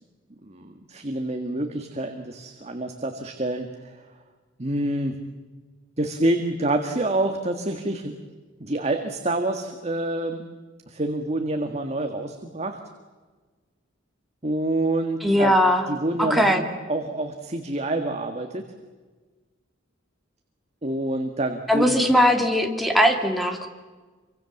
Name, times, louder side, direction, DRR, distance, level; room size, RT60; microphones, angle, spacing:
voice 1, 0.4-3.9 4.6-5.1 6.0-8.1 8.6-10.4 10.9-12.8 14.4-15.5 15.9-18.6 20.8-22.1, right 1 dB, 35° right, 5 dB, 1.8 m, -27 dB
voice 2, 15.2-15.9 16.2-16.6 21.7-23.7, equal, ahead, 3 dB, 2.6 m, -20 dB
27.5 x 24.5 x 7.2 m, 1.3 s
head